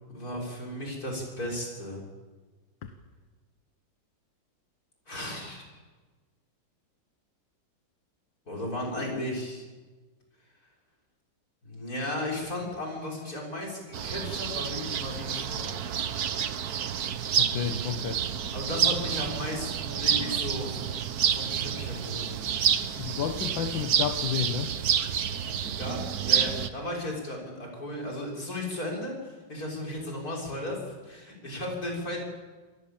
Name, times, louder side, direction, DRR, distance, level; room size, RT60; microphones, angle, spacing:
voice 1, 0.1-2.0 5.1-5.7 8.5-9.6 11.6-15.7 18.5-20.9 21.3-22.3 25.6-26.0 26.2-32.2, left 1 dB, 45° left, 0 dB, 7.1 m, -35 dB
sound 1, 13.9-26.7, right 8 dB, 55° right, 1.3 m, -29 dB
voice 2, 17.4-18.2 23.0-24.7, left 8 dB, 70° left, 6 dB, 2.1 m, -31 dB
27.5 x 19.5 x 7.4 m, 1.3 s
omnidirectional pair, 2.1 m